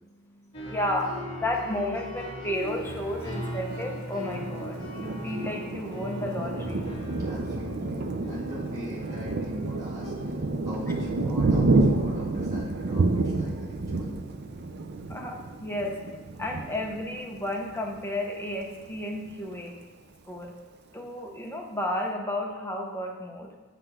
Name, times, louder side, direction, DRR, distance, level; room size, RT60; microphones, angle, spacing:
voice 1, 0.0-6.8 15.1-16.0 16.4-19.8 20.3-20.5 20.9-23.5, left 1 dB, 10° left, 0 dB, 0.8 m, -32 dB
sound 1, 0.5-10.4, equal, 25° left, 1.9 m, -39 dB
Thunder, 3.7-18.0 18.5-18.6 18.9-19.5, right 2 dB, 55° right, 0.5 m, -29 dB
voice 2, 7.2-14.1, left 1 dB, 15° right, -9 dB, 1.9 m, -42 dB
7.6 x 3.3 x 6.1 m, 1.3 s
head